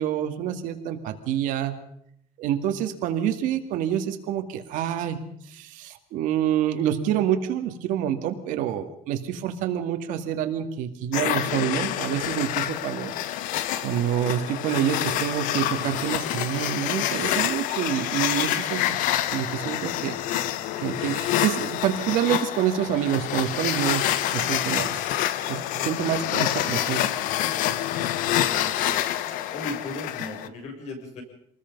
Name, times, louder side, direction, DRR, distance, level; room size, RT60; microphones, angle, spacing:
voice 1, 0.0-1.7 2.4-13.1 13.8-19.0 19.3-20.2 20.8-24.0 24.3-24.9 25.5-27.0, right 10 dB, 60° right, 6 dB, 2.2 m, -27 dB
sound 1, 11.1-30.5, left 12 dB, 65° left, 1.1 m, -27 dB
voice 2, 19.5-20.0 28.3-29.0 29.5-31.2, left 2 dB, 45° left, 3 dB, 6.9 m, -38 dB
27.0 x 20.5 x 5.4 m, 0.70 s
cardioid pair, 180°, 15 cm